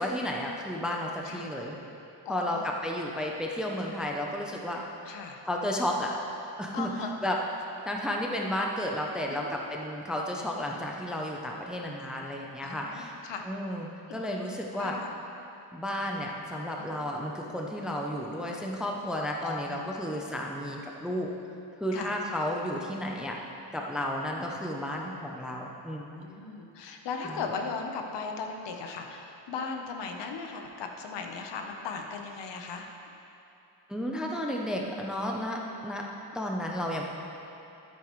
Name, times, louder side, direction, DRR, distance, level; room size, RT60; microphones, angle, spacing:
voice 1, 0.0-1.8 2.3-4.8 5.5-6.1 6.6-6.9 7.2-7.4 7.9-13.2 13.4-15.0 15.7-21.3 21.8-23.4 23.7-26.1 27.2-27.4 33.9-36.1 36.3-37.0, left 1 dB, ahead, -1 dB, 0.6 m, -32 dB
voice 2, 2.2-2.7 5.1-5.4 6.7-7.3 9.3-9.8 12.6-13.4 14.8-15.1 16.8-17.0 19.4-20.2 21.9-22.2 24.6-24.7 26.1-32.9, left 5 dB, 65° left, 3 dB, 1.0 m, -38 dB
13.0 x 8.7 x 3.1 m, 2.8 s
cardioid pair, 145°, 46 cm